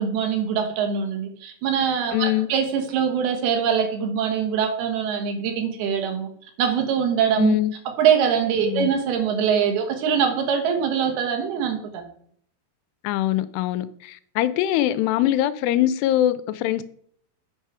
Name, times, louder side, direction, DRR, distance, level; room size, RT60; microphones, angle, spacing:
voice 1, 0.0-6.3 6.6-7.6 8.0-12.1, right 7 dB, 75° right, 3.1 m, -23 dB
voice 2, 2.1-2.5 7.4-7.7 8.6-8.9 13.0-16.8, left 13 dB, 85° left, 2.6 m, -23 dB
8.8 x 5.6 x 4.8 m
omnidirectional pair, 4.8 m